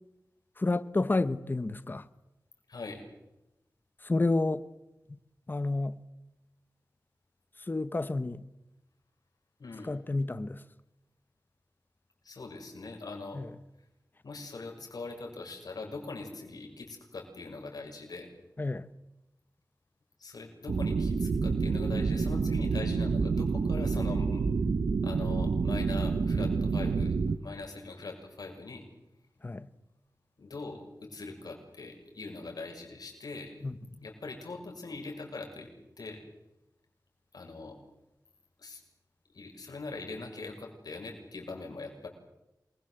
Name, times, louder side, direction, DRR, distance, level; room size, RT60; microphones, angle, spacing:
voice 1, 0.6-2.1 4.0-4.7 5.1-5.2 5.5-6.0 7.6-8.4 9.8-10.6 13.3-13.5 18.6-18.9 29.4-29.7 33.6-33.8, left 2 dB, 30° left, 1.0 m, -30 dB
voice 2, 2.7-3.0 9.6-9.9 12.2-13.4 14.2-18.3 20.2-24.4 25.0-28.8 30.4-33.5 34.0-35.7 36.0-36.2 37.3-37.8 38.6-38.8 39.3-42.1, left 3 dB, 75° left, 6.8 m, -42 dB
sound 1, 20.7-27.4, right 4 dB, 85° right, 1.2 m, -28 dB
27.5 x 22.0 x 8.0 m
wide cardioid pair, 105°, 7 cm